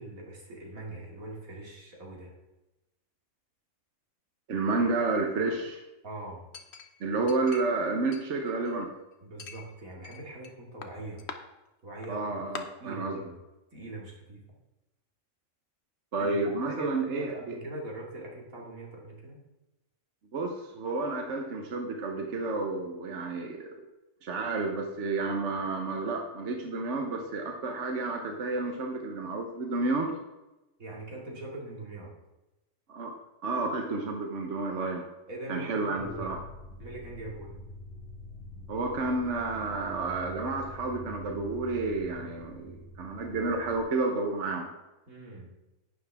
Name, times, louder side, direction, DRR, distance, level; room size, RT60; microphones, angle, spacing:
voice 1, 0.0-2.3 6.0-6.4 9.2-11.2 11.8-12.4 12.8-13.4 13.7-14.4 16.2-19.4 30.8-32.1 35.3-36.3 36.8-37.6 45.1-45.5, right 2 dB, 90° right, -2 dB, 2.9 m, -42 dB
voice 2, 4.5-5.8 7.0-8.9 12.1-13.2 16.1-17.6 20.3-23.8 24.2-30.1 32.9-33.1 33.4-35.1 35.5-36.4 38.7-44.7, right 3 dB, 60° right, 2 dB, 1.4 m, -30 dB
Chink clink, 6.5-7.8 8.1-8.9 9.4-10.5 10.8-11.4 12.0-12.1 12.5-12.6, left 6 dB, 55° left, 1.1 m, -44 dB
sound 1, 36.0-43.8, equal, ahead, 1.9 m, -46 dB
11.5 x 9.3 x 3.6 m, 0.99 s
omnidirectional pair, 1.4 m